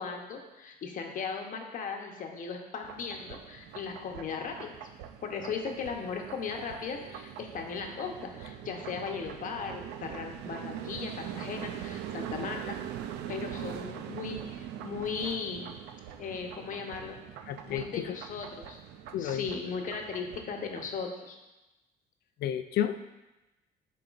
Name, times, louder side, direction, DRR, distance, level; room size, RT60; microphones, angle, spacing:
voice 1, 0.0-4.8 5.2-12.8 13.3-15.7 16.2-17.2 17.7-18.8 19.2-21.4, left 5 dB, 50° left, 3 dB, 1.0 m, -37 dB
sound 1, 2.8-21.0, right 10 dB, 85° right, 0.5 m, -42 dB
voice 2, 17.5-18.2 19.1-19.4 22.4-23.0, left 10 dB, 70° left, 10 dB, 0.5 m, -31 dB
11.0 x 4.3 x 2.5 m, 1.0 s
cardioid pair, 110°, 17 cm